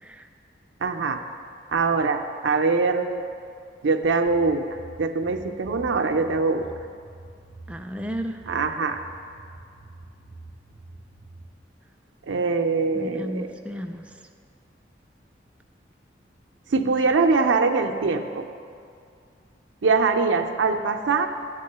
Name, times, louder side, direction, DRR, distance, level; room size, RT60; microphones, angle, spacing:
voice 1, 0.8-1.2 1.7-3.2 3.8-4.6 5.0-6.7 8.5-9.0 12.2-13.5 16.7-18.5 19.8-21.3, right 4 dB, 85° right, 6 dB, 0.5 m, -23 dB
sound 1, 4.0-11.4, right 2 dB, 25° left, 1.1 m, -46 dB
voice 2, 7.7-8.5 12.9-14.2, equal, 5° right, 5 dB, 0.3 m, -34 dB
10.5 x 3.7 x 6.6 m, 2.3 s
head